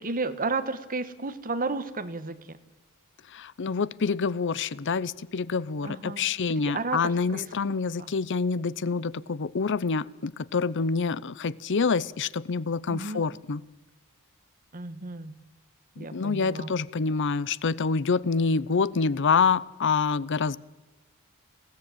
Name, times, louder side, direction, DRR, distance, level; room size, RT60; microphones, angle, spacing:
voice 1, 0.0-2.6 5.8-6.3 6.6-7.5 8.0-8.1 12.9-13.2 14.7-15.3 16.0-16.7, right 3 dB, 40° right, 11 dB, 1.4 m, -32 dB
voice 2, 3.3-13.6 16.0-20.6, left 5 dB, 60° left, 20 dB, 0.6 m, -27 dB
21.0 x 16.5 x 9.1 m, 1.1 s
head